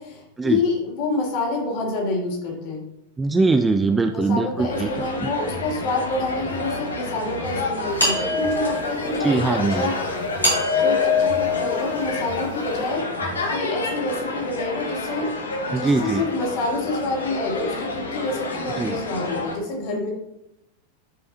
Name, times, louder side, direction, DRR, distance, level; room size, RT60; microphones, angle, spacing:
voice 1, 0.0-2.8 4.1-9.9 10.7-13.1 13.5-15.3 15.6-20.1, left 3 dB, 45° left, -2 dB, 3.0 m, -27 dB
voice 2, 3.2-4.9 5.2-5.3 9.2-9.9 15.7-16.2 18.8-19.0, right 3 dB, 10° right, 7 dB, 0.4 m, -21 dB
sound 1, 3.7-4.8 5.3-6.6 7.3-8.6 9.2-10.6 11.1-12.5 13.0-13.7, equal, 70° right, 2.2 m, -41 dB
sound 2, 4.7-19.6, left 2 dB, 70° left, 1.4 m, -29 dB
sound 3, 8.0-9.1 10.4-12.3, left 4 dB, 85° left, 3.2 m, -23 dB
12.0 x 5.4 x 2.8 m, 0.85 s
figure-of-eight pair, 90°, 0 cm